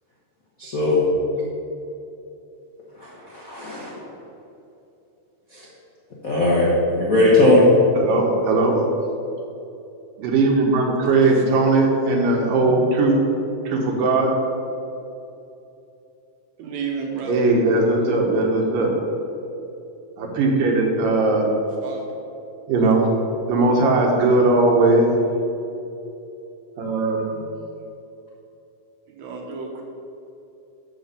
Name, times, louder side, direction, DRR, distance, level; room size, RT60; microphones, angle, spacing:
voice 1, 0.6-1.0 3.0-4.0 5.5-5.7 6.2-7.7, left 2 dB, 60° left, -6 dB, 0.9 m, -19 dB
voice 2, 8.0-8.8 10.2-13.2 13.7-14.3 17.3-18.9 20.2-21.5 22.7-23.1 23.5-25.1 26.8-27.5, right 2 dB, 85° right, 0 dB, 2.9 m, -19 dB
voice 3, 16.6-17.5 21.8-22.1 22.8-22.9 29.1-29.8, right 5 dB, 65° right, 1 dB, 2.1 m, -31 dB
11.5 x 4.1 x 6.8 m, 2.8 s
omnidirectional pair, 3.8 m